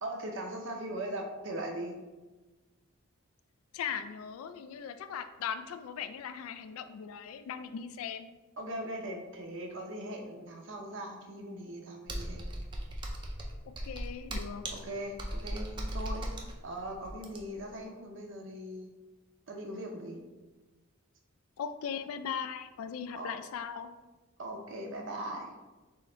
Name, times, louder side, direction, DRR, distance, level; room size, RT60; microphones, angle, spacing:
voice 1, 0.0-1.9 8.6-12.5 14.7-18.9 19.5-20.2 23.2-23.3 24.4-25.5, right 1 dB, 60° right, 2 dB, 0.7 m, -40 dB
voice 2, 3.7-8.3 13.7-14.6 21.6-23.9, left 7 dB, 80° left, 10 dB, 0.3 m, -39 dB
Computer keyboard, 12.1-17.7, right 1 dB, 20° right, 0.4 m, -38 dB
3.8 x 3.2 x 3.8 m, 1.2 s
head